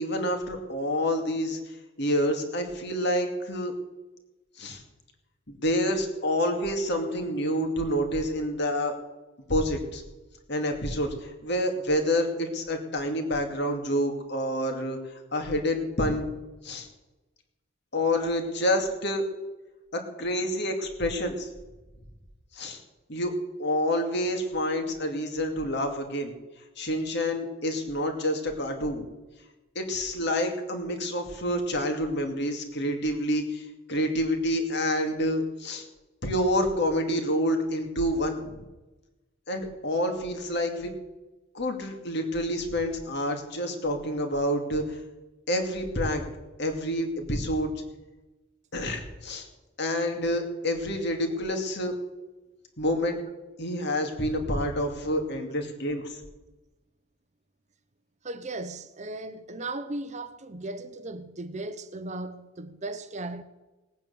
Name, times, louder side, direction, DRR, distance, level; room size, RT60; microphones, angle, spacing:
voice 1, 0.0-3.7 4.6-4.8 5.5-8.9 9.5-10.0 10.5-16.3 16.6-16.9 17.9-19.2 19.9-21.5 22.5-22.8 23.1-23.3 23.6-26.3 26.8-29.0 29.7-35.9 36.2-38.6 39.5-40.9 41.5-45.0 45.5-46.2 46.6-47.7 48.7-49.5 49.8-51.9 52.8-53.2 53.6-56.2, equal, 55° left, 2.5 m, -28 dB
voice 2, 58.2-63.4, right 2 dB, 35° right, 0.8 m, -37 dB
18.5 x 9.2 x 7.0 m
head